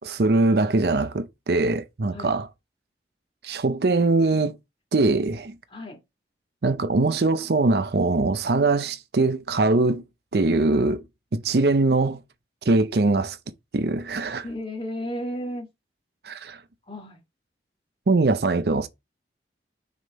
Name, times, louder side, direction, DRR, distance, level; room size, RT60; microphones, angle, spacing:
voice 1, 0.0-2.5 3.4-4.6 4.9-5.5 6.6-10.0 10.3-11.0 11.3-12.2 12.6-13.4 13.7-14.4 16.2-16.6 18.1-18.9, right 3 dB, 65° right, 0.6 m, -22 dB
voice 2, 14.4-15.7 16.9-17.2, equal, 30° left, 2.2 m, -33 dB
6.3 x 3.6 x 4.2 m
head